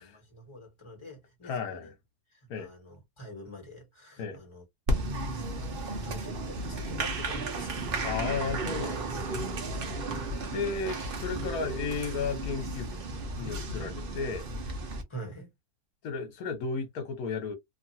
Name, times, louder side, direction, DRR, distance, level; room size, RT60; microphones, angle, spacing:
voice 1, 0.0-1.9 2.3-4.6 6.0-8.0 15.1-15.5, right 1 dB, 20° left, 1.3 m, -45 dB
voice 2, 1.4-1.9 2.5-2.7 4.2-4.4 8.0-9.5 10.5-13.0 13.3-14.5 16.0-17.6, left 5 dB, 70° left, 1.3 m, -34 dB
Applause, 4.9-15.0, right 2 dB, 45° right, 0.8 m, -33 dB
2.9 x 2.5 x 2.7 m
omnidirectional pair, 1.6 m